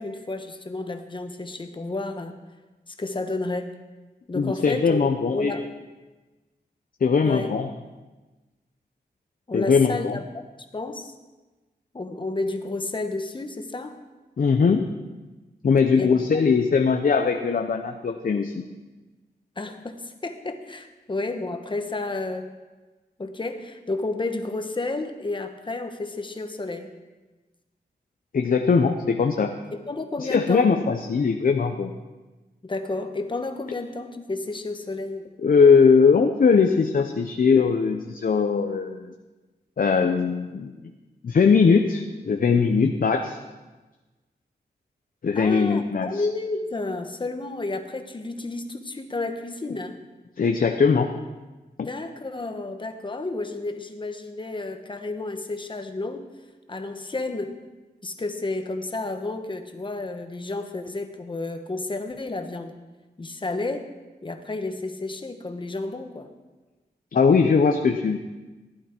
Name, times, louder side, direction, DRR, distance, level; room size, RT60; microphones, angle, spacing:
voice 1, 0.0-2.4 2.9-3.7 4.3-5.7 7.3-7.5 9.5-10.2 10.7-11.1 11.9-14.0 16.0-16.1 19.6-22.5 23.2-26.9 29.9-30.8 32.6-35.2 45.3-50.0 51.8-56.3 56.7-57.6 58.0-62.8 63.2-63.8 64.2-66.3, left 2 dB, 30° left, 6 dB, 1.1 m, -31 dB
voice 2, 4.3-5.5 7.0-7.7 9.5-10.2 14.4-14.9 15.6-18.6 28.3-29.5 30.2-31.9 35.4-39.1 39.8-40.7 41.2-43.4 45.2-46.2 50.4-51.1 51.8-51.9 67.1-68.2, left 5 dB, 55° left, 5 dB, 0.7 m, -20 dB
15.5 x 11.0 x 4.5 m, 1.2 s
wide cardioid pair, 130°, 17 cm